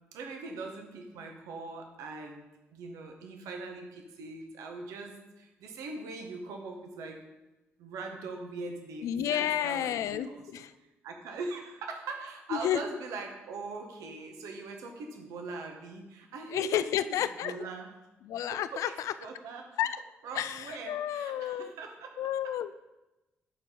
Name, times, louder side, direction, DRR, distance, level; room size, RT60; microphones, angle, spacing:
voice 1, 0.1-7.2 7.8-10.6 11.0-17.1 17.4-17.9 18.5-19.7 20.2-22.1, right 3 dB, 70° right, 3 dB, 1.0 m, -41 dB
voice 2, 9.0-10.7 12.5-12.8 16.5-17.5 18.2-19.1 19.8-20.0 20.4-21.7 22.2-22.8, left 11 dB, 65° left, 13 dB, 0.4 m, -31 dB
11.0 x 4.4 x 3.7 m, 1.0 s
hypercardioid pair, 40°, 6 cm